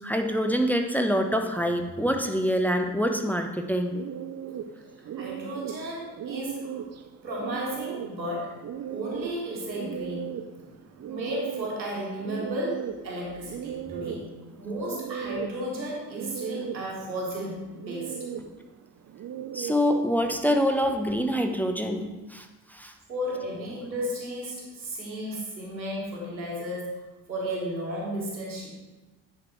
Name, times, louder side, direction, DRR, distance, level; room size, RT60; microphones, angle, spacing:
voice 1, 0.0-4.0 13.9-14.0 19.5-22.9, equal, 5° left, 4 dB, 0.8 m, -26 dB
sound 1, 3.9-20.0, right 9 dB, 35° right, 0.6 m, -38 dB
voice 2, 5.1-6.8 7.2-8.5 8.9-10.3 11.1-14.2 14.6-18.2 23.1-27.0 27.3-28.7, equal, 90° right, -3 dB, 1.5 m, -33 dB
9.9 x 4.7 x 4.4 m, 1.1 s
figure-of-eight pair, 40°, 50 cm